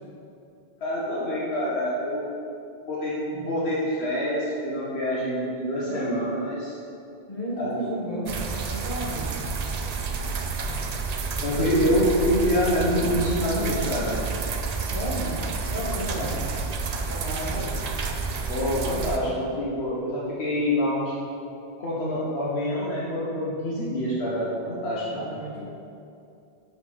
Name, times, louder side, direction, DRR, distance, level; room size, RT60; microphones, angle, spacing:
voice 1, 0.8-2.3 2.9-6.7 7.6-7.9 11.4-14.2 16.2-16.3 17.5-17.7 18.5-21.1 21.8-25.2, equal, 85° left, -7 dB, 1.5 m, -26 dB
voice 2, 7.3-8.3 8.7-9.3 14.9-16.5 17.0-17.6 25.1-25.6, equal, 50° left, -8 dB, 2.3 m, -33 dB
sound 1, 8.3-19.2, right 4 dB, 50° right, 0.5 m, -30 dB
5.7 x 5.5 x 6.1 m, 2.6 s
omnidirectional pair, 1.0 m